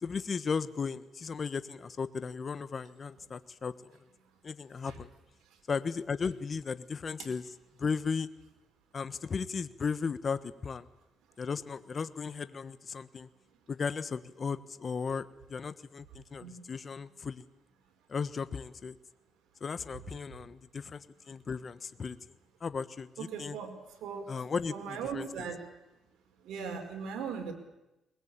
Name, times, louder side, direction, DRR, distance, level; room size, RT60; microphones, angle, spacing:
voice 1, 0.0-3.7 4.4-5.1 5.7-7.4 7.8-8.3 8.9-10.8 11.4-13.3 13.7-17.4 18.1-19.0 19.6-22.2 22.6-23.6 24.3-25.3, left 5 dB, 40° left, 13 dB, 1.2 m, -35 dB
voice 2, 23.2-23.7 24.0-25.6 26.4-27.5, right 6 dB, 80° right, 4 dB, 4.9 m, -39 dB
21.5 x 21.0 x 8.8 m, 0.95 s
cardioid pair, 90°, 0 cm